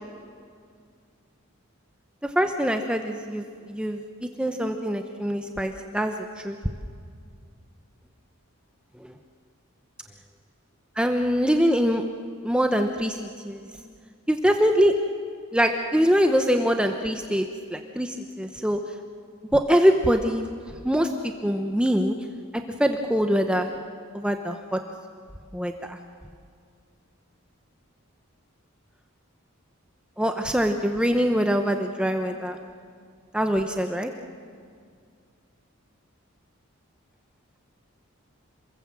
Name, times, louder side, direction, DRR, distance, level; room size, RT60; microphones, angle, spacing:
voice 1, 2.4-4.0 4.4-6.1 6.4-6.6 11.0-12.0 12.4-13.2 13.4-13.7 14.3-14.9 15.5-17.4 17.7-18.8 19.5-20.5 20.8-21.1 21.4-22.2 22.8-23.7 24.1-24.8 25.5-26.0 30.2-32.6 33.3-34.1, equal, 5° right, 5 dB, 0.8 m, -23 dB
27.0 x 21.0 x 7.6 m, 2.2 s
head